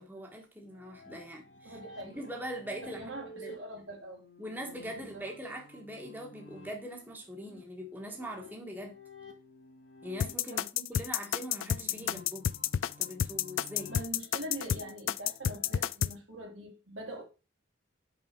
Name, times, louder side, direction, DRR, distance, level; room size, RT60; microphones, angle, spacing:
voice 1, 0.0-3.5 4.4-8.9 10.0-12.5 13.0-13.9 14.7-14.8, equal, 10° right, 1.2 m, -42 dB
sound 1, 0.7-15.7, left 1 dB, 70° left, 1.5 m, -53 dB
voice 2, 1.6-2.3 2.8-4.2 4.9-5.2 10.5-10.6 13.9-17.2, right 1 dB, 80° right, 2.4 m, -43 dB
sound 2, 10.2-16.1, left 9 dB, 90° left, 0.4 m, -30 dB
5.9 x 5.3 x 4.5 m
head